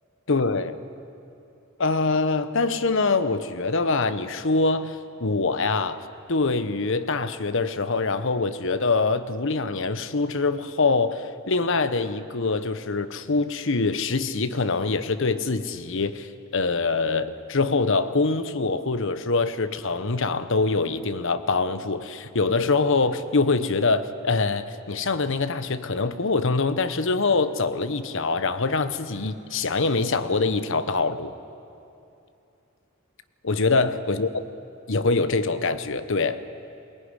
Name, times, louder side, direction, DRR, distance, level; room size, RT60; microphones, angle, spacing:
voice 1, 0.3-0.7 1.8-6.0 6.3-31.3 33.4-34.3 34.9-36.4, left 3 dB, 65° left, 11 dB, 1.0 m, -24 dB
21.5 x 19.0 x 9.9 m, 2.7 s
head